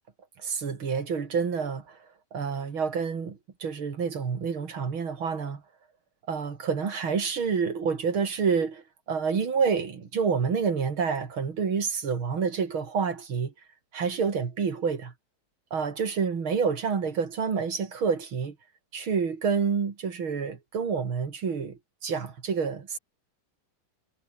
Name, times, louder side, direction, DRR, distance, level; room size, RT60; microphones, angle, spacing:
voice 1, 0.4-2.0 2.3-5.6 6.3-13.5 13.9-15.1 15.7-18.6 18.9-23.0, right 6 dB, 75° right, 3.4 m, -28 dB
omnidirectional pair, 2.3 m